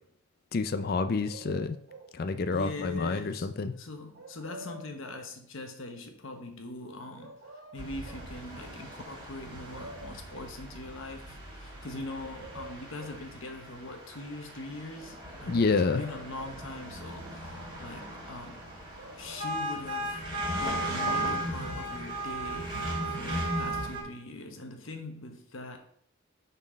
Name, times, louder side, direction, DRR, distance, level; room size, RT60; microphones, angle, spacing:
voice 1, 0.5-1.8 2.1-3.7 15.5-16.0, left 4 dB, 45° left, 10 dB, 0.4 m, -28 dB
sound 1, 0.7-2.2 4.1-5.3 7.1-8.3 9.4-9.5 9.7-10.6 11.8-13.2 15.5-16.7 18.9-19.5, right 1 dB, 55° right, 1.7 m, -48 dB
voice 2, 2.5-3.5 3.7-18.7 19.1-20.2 20.6-22.8 23.1-25.8, left 2 dB, 70° left, 5 dB, 1.1 m, -42 dB
sound 2, 7.8-24.0, right 1 dB, 25° right, 2.5 m, -37 dB
7.3 x 4.4 x 5.2 m, 0.64 s
head